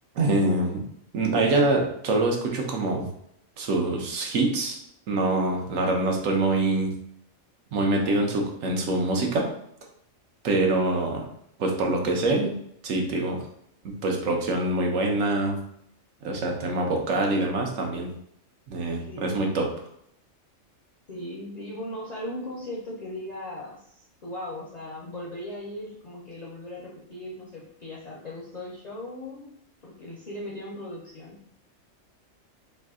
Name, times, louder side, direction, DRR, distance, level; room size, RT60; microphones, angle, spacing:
voice 1, 0.1-0.8 1.1-3.1 3.6-4.8 5.1-6.9 7.7-9.5 10.4-11.2 11.6-12.6 12.8-13.4 13.8-15.6 16.2-18.1 18.7-19.7, right 2 dB, 80° right, 1 dB, 1.1 m, -25 dB
voice 2, 5.8-6.3 8.0-8.3 19.1-19.7 21.1-29.5 29.8-31.4, left 1 dB, 45° left, -4 dB, 0.6 m, -38 dB
3.2 x 2.6 x 3.6 m, 0.72 s
omnidirectional pair, 1.4 m